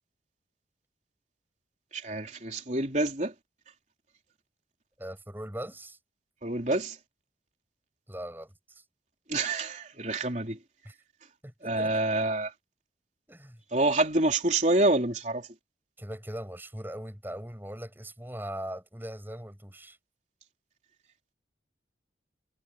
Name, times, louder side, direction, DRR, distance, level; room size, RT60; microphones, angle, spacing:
voice 1, 1.9-3.3 6.4-7.0 9.3-10.6 11.6-12.5 13.7-15.5, right 2 dB, 40° right, 3.8 m, -27 dB
voice 2, 5.0-6.0 8.1-8.8 10.8-10.9 11.4-11.9 13.3-13.6 16.0-20.0, right 1 dB, 10° right, 7.8 m, -40 dB
head